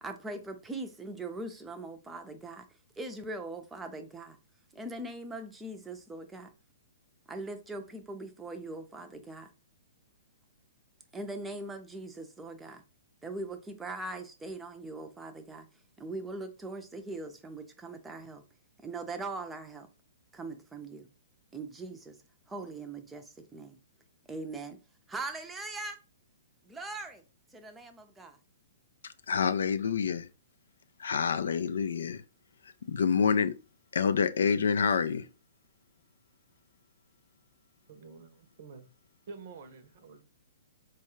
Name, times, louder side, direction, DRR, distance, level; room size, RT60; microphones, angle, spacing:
voice 1, 0.0-2.6 3.0-4.4 4.7-6.5 7.3-9.5 11.1-12.8 13.2-15.7 16.0-18.4 18.8-19.9 20.3-21.1 21.5-22.2 22.5-23.8 24.3-24.8 25.1-26.0 26.6-27.2 27.5-28.4, right 2 dB, 10° right, 0.6 m, -41 dB
voice 2, 29.3-30.3 31.0-32.2 32.9-33.5 33.9-35.3, left 6 dB, 65° left, 0.3 m, -27 dB
voice 3, 37.9-38.9 39.3-40.2, right 4 dB, 50° right, 0.7 m, -48 dB
4.5 x 2.3 x 3.0 m
figure-of-eight pair, 115°, 0 cm